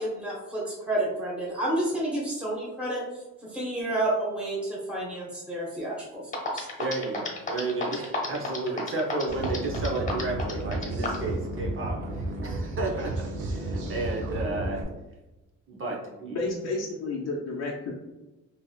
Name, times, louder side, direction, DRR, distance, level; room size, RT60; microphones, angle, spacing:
voice 1, 0.0-3.0 3.5-6.2 6.5-6.7, right 1 dB, 5° right, -5 dB, 1.1 m, -30 dB
sound 1, 6.0-6.1 6.3-11.3, left 3 dB, 25° left, 1.0 m, -32 dB
voice 2, 6.8-14.8 15.7-16.4, right 2 dB, 45° right, 0 dB, 0.8 m, -32 dB
sound 2, 9.3-14.8, right 2 dB, 80° right, 0.6 m, -32 dB
voice 3, 16.3-17.9, left 3 dB, 55° left, -3 dB, 0.6 m, -31 dB
3.2 x 2.7 x 2.3 m, 1.0 s
cardioid pair, 90°, 30 cm